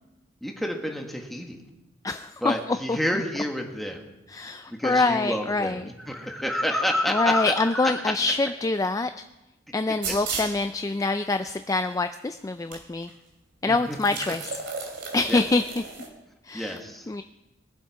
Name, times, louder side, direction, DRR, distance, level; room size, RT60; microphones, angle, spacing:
voice 1, 0.4-1.6 2.4-4.0 4.4-8.1 10.1-10.2 13.6-14.0 15.3-15.4 16.5-17.1, equal, ahead, 1 dB, 1.6 m, -29 dB
voice 2, 2.0-3.0 4.3-5.9 7.1-9.1 9.7-13.1 13.6-14.5 15.1-15.8 16.4-16.8 17.1-17.2, left 3 dB, 20° left, 9 dB, 0.4 m, -25 dB
sound 1, 10.0-10.6 11.5-11.6 12.7-12.8 13.1-13.2 13.9-16.1, right 4 dB, 70° right, 2.8 m, -34 dB
22.0 x 8.0 x 4.7 m, 1.0 s
head